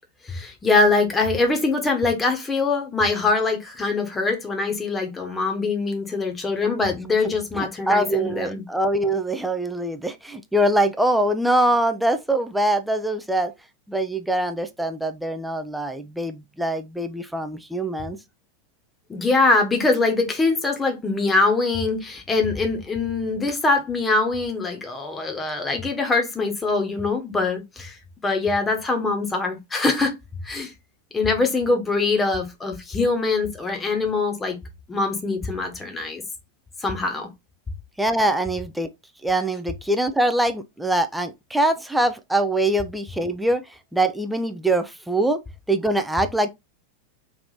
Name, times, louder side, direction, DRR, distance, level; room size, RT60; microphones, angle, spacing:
voice 1, 0.3-8.6 19.1-27.9 28.2-30.1 30.4-30.7 31.1-34.6 34.9-36.2 36.8-37.3, left 3 dB, 15° left, 1.2 m, -23 dB
voice 2, 7.5-13.5 13.9-18.2 38.0-38.9 39.2-43.6 43.9-45.4 45.7-46.5, right 1 dB, 5° right, 0.5 m, -23 dB
3.4 x 2.8 x 4.0 m
figure-of-eight pair, 90°, 0 cm